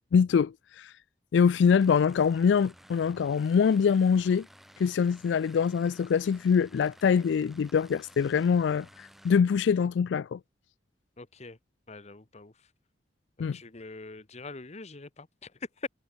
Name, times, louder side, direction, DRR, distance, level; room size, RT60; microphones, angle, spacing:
voice 1, 0.1-0.9 1.3-4.5 4.8-10.4 13.4-13.6, left 6 dB, 80° left, 0.3 m, -24 dB
sound 1, 1.6-9.4, equal, ahead, 5.3 m, -55 dB
voice 2, 11.2-11.6 11.9-12.5 13.4-15.9, left 3 dB, 40° left, 1.1 m, -43 dB
head